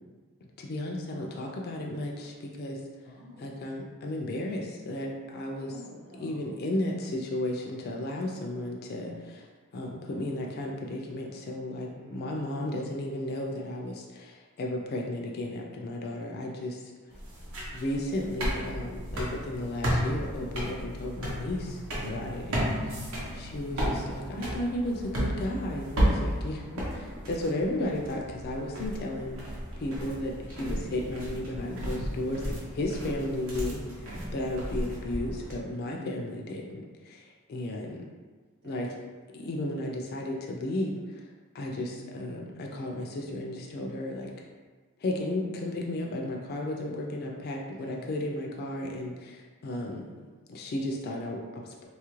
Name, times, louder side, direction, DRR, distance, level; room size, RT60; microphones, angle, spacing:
voice 1, 0.6-2.8 3.4-5.7 6.2-9.5 9.7-16.9 17.7-23.1 23.3-32.4 32.7-33.8 34.3-38.1 38.6-39.0 39.3-41.2 41.5-44.3 45.0-50.0 50.5-51.8, left 1 dB, 50° left, 0 dB, 0.3 m, -34 dB
voice 2, 3.0-3.5 5.7-6.6 11.8-12.2 17.1-18.1 30.2-30.9 35.8-36.2 37.8-38.0 38.6-38.9 41.9-42.2 47.8-48.1 50.0-50.3, left 1 dB, 50° right, -6 dB, 0.5 m, -52 dB
sound 1, 17.1-35.5, equal, 80° right, 0.8 m, -33 dB
2.9 x 2.4 x 3.0 m, 1.4 s
head